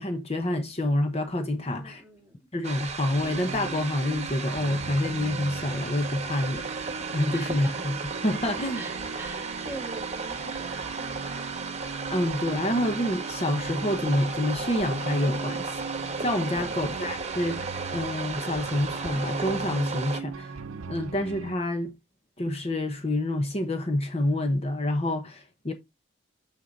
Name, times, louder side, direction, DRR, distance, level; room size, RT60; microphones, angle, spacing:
voice 1, 0.0-2.0 2.5-6.8 7.1-8.0 8.2-8.8 12.1-20.6 20.9-21.9 22.4-25.7, left 1 dB, 30° left, 1.0 m, -28 dB
voice 2, 1.6-2.4 7.3-7.8 8.7-11.1, right 1 dB, 10° right, 1.8 m, -43 dB
sound 1, 2.6-20.2, right 4 dB, 30° right, 1.2 m, -34 dB
sound 2, 3.1-21.6, right 4 dB, 80° right, 0.6 m, -40 dB
6.7 x 6.3 x 3.9 m
head